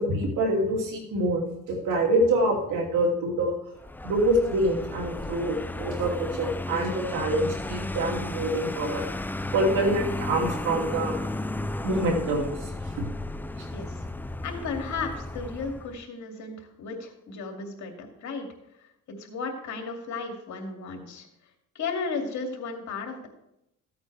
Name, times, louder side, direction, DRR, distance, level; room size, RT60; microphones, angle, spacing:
voice 1, 0.0-3.6 4.0-9.1 9.5-11.2 11.8-12.7 13.0-13.1, right 1 dB, 85° right, 0 dB, 2.8 m, -26 dB
Vehicle, 3.8-16.0, left 2 dB, 5° left, 0.4 m, -34 dB
voice 2, 13.7-14.0 14.4-18.5 19.1-21.3 21.7-23.3, left 4 dB, 70° left, 3 dB, 2.5 m, -34 dB
14.5 x 8.6 x 3.4 m, 0.81 s
cardioid pair, 90°, 30 cm